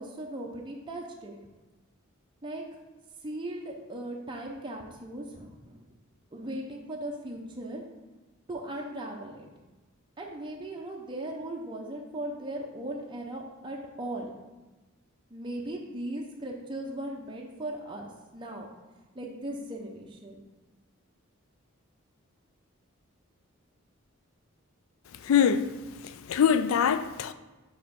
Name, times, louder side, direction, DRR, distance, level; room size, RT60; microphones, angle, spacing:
voice 1, 0.0-1.4 2.4-2.8 3.2-5.9 6.3-7.8 8.5-9.5 10.2-14.3 15.3-18.7 19.1-20.4, right 1 dB, 20° right, 0.6 m, -38 dB
voice 2, 25.2-25.7 26.0-27.3, left 8 dB, 70° left, 0.3 m, -24 dB
4.9 x 4.2 x 5.3 m
head